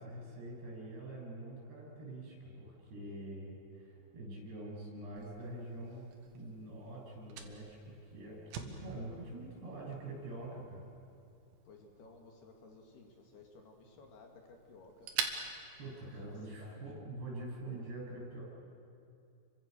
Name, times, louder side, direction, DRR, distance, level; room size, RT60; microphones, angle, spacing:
voice 1, 0.0-6.0 6.3-10.9 15.8-18.4, right 1 dB, 60° right, -2 dB, 10.0 m, -45 dB
Fire, 5.2-16.7, right 7 dB, 80° right, 4.1 m, -47 dB
voice 2, 11.7-15.1 16.0-16.8, left 3 dB, 60° left, 2 dB, 4.0 m, -57 dB
30.0 x 24.5 x 6.9 m, 2.7 s
omnidirectional pair, 5.4 m